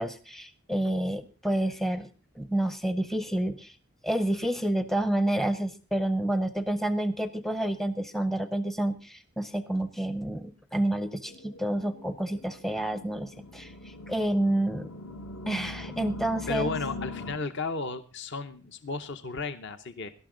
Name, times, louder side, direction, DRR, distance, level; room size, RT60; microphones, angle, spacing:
voice 1, 0.0-2.1 2.4-3.8 4.0-14.9 15.5-16.7, right 1 dB, ahead, 11 dB, 0.6 m, -29 dB
sound 1, 11.3-17.4, left 2 dB, 70° left, 1.5 m, -41 dB
voice 2, 16.5-20.1, left 3 dB, 50° left, 10 dB, 0.8 m, -34 dB
18.0 x 12.0 x 3.8 m, 0.35 s
head